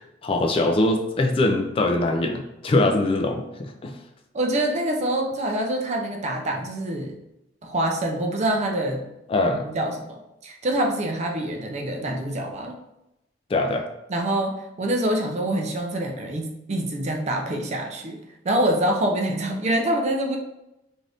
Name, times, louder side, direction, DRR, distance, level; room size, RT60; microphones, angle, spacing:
voice 1, 0.0-4.0 9.3-9.7 13.5-13.9, left 2 dB, 30° left, 3 dB, 0.3 m, -22 dB
voice 2, 4.3-7.1 7.6-9.1 9.7-12.8 14.1-18.2 18.4-20.4, right 1 dB, 40° right, 2 dB, 0.4 m, -25 dB
2.6 x 2.4 x 3.3 m, 0.88 s
head